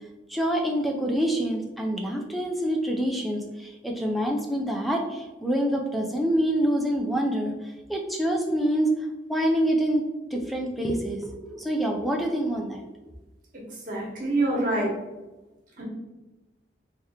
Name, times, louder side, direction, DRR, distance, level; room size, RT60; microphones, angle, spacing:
voice 1, 0.3-7.5 7.9-8.9 9.3-10.0 10.3-12.8, equal, ahead, 1 dB, 0.4 m, -26 dB
voice 2, 13.9-14.9 15.8-15.9, right 2 dB, 50° right, -3 dB, 1.2 m, -25 dB
3.4 x 2.9 x 3.5 m, 1.1 s
head